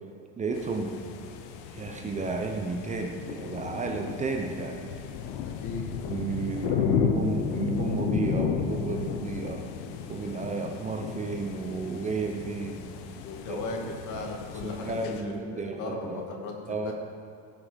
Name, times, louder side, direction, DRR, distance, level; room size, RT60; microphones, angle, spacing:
voice 1, 0.4-1.0 1.7-4.8 6.1-9.7 10.1-12.9 13.5-13.6 14.5-16.3 16.7-16.9, right 4 dB, 20° right, 3 dB, 0.8 m, -32 dB
sound 1, 0.5-15.2, left 8 dB, 80° left, 1.0 m, -33 dB
voice 2, 5.4-5.8 13.2-13.8 14.1-16.9, left 3 dB, 55° left, 1 dB, 2.4 m, -37 dB
17.5 x 7.0 x 5.2 m, 2.6 s
cardioid pair, 140°, 35 cm